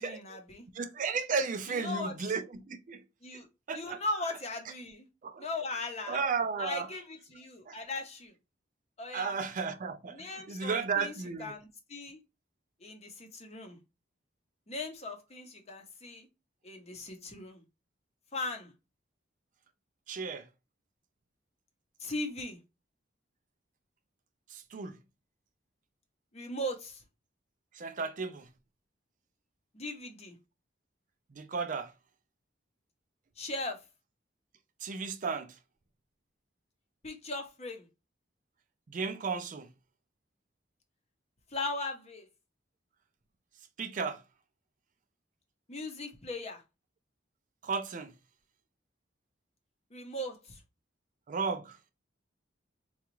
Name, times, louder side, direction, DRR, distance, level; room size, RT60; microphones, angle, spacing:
voice 1, 0.0-0.6 1.7-2.3 3.2-3.5 3.7-5.1 5.4-6.2 6.6-8.3 9.0-9.4 10.1-12.2 12.8-13.8 14.7-16.3 16.6-17.6 18.3-18.7 22.0-22.6 26.3-27.0 29.7-30.4 33.4-33.8 37.0-37.9 41.5-42.3 45.7-46.6 49.9-50.6, left 2 dB, 35° left, 0.7 m, -38 dB
voice 2, 0.7-3.0 3.7-4.0 5.2-5.4 6.1-6.9 7.7-7.8 9.1-11.5 20.1-20.4 24.5-25.0 27.8-28.4 31.3-31.9 34.8-35.5 38.9-39.7 43.8-44.2 47.6-48.1 51.3-51.8, right 5 dB, 45° right, 0.4 m, -34 dB
3.8 x 2.3 x 3.0 m
head